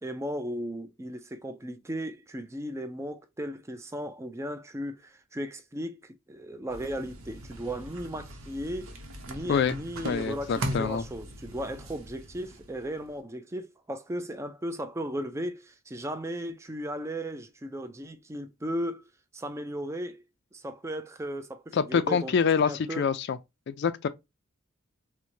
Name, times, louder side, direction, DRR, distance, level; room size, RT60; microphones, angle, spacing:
voice 1, 0.0-8.9 9.3-19.0 19.3-20.2 20.5-22.3 22.6-23.1, equal, 15° right, 0.4 m, -36 dB
sound 1, 6.7-13.2, right 1 dB, 90° right, 0.8 m, -39 dB
voice 2, 10.0-11.0 21.7-23.4 23.7-24.1, left 6 dB, 55° left, 0.3 m, -26 dB
4.4 x 2.1 x 2.6 m
head